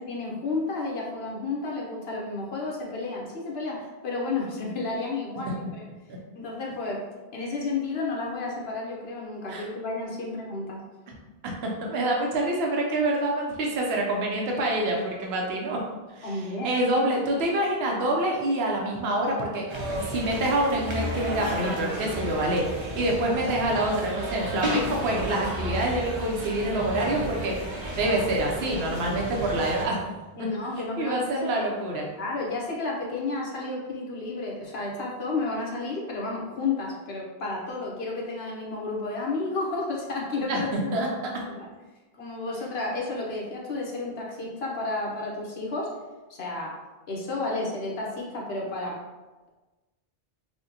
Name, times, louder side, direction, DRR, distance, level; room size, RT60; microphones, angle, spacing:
voice 1, 0.0-5.8 6.4-7.0 7.3-10.8 16.2-16.7 30.4-31.7 32.2-41.7 42.1-45.9 46.3-46.7 47.1-49.0, left 3 dB, 80° left, -2 dB, 1.1 m, -32 dB
voice 2, 11.4-15.8 16.2-30.0 30.4-30.5 31.0-32.1 40.5-41.3, right 1 dB, 80° right, -1 dB, 0.9 m, -27 dB
sound 1, 19.7-29.8, equal, 35° right, 0.6 m, -32 dB
5.9 x 2.1 x 2.8 m, 1.2 s
omnidirectional pair, 1.0 m